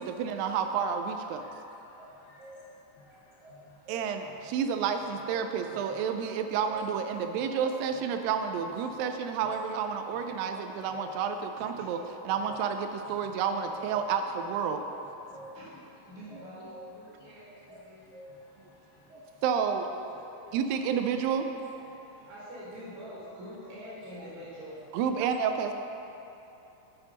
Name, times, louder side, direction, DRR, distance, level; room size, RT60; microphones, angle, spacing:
voice 1, 0.0-1.4 3.9-12.0 12.3-14.8 19.4-19.9 20.2-20.3 20.5-21.4 24.9-25.7, right 7 dB, 85° right, 6 dB, 2.3 m, -30 dB
voice 2, 1.3-2.4 3.2-4.5 5.3-6.0 7.4-7.5 7.9-8.1 8.9-9.6 10.1-10.2 10.9-11.1 11.6-11.7 12.4-12.5 13.2-13.3 15.1-15.8 16.0-16.2 17.2-17.3 17.6-19.4 20.1-20.6 21.6-22.3 24.0-24.3, left 2 dB, 80° left, -5 dB, 1.4 m, -58 dB
sound 1, 1.9-2.9 3.4-4.3 4.8-5.7 6.2-7.2 7.6-8.6 9.0-9.9 10.5-11.4 12.0-13.0 13.4-14.4 14.9-15.8 16.3-17.2 17.7-18.6 19.1-20.0 20.5-20.7, equal, 40° right, 1.6 m, -50 dB
voice 3, 15.2-18.3 22.2-24.9, equal, 60° right, -10 dB, 2.8 m, -45 dB
8.8 x 4.5 x 5.1 m, 3.0 s
omnidirectional pair, 4.0 m